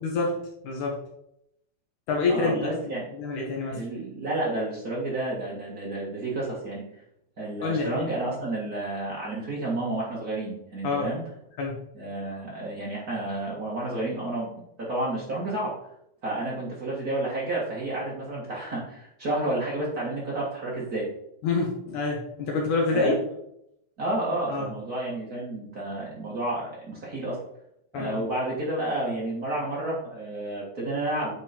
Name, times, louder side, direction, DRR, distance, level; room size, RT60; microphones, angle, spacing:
voice 1, 0.0-1.0 2.1-3.9 7.6-8.1 10.8-11.1 11.6-11.8 21.4-23.2 24.5-24.7 27.9-28.2, left 3 dB, 65° left, -1 dB, 2.1 m, -27 dB
voice 2, 2.3-3.0 3.7-6.8 7.4-11.2 11.9-15.8 16.2-21.1 22.9-23.1 24.0-27.4 27.9-31.3, right 2 dB, 65° right, -5 dB, 0.9 m, -30 dB
9.8 x 4.0 x 4.4 m, 0.77 s
omnidirectional pair, 4.8 m